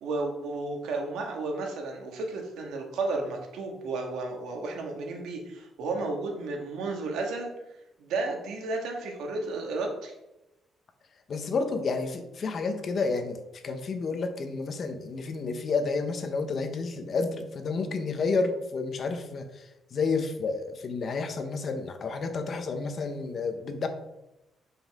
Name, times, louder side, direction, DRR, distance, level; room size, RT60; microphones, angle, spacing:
voice 1, 0.0-7.5 8.0-10.1, right 3 dB, 85° right, 2 dB, 1.6 m, -33 dB
voice 2, 11.3-13.4 13.6-23.9, left 4 dB, 50° left, 6 dB, 1.1 m, -30 dB
7.7 x 5.6 x 3.6 m, 0.93 s
cardioid pair, 90°, 0 cm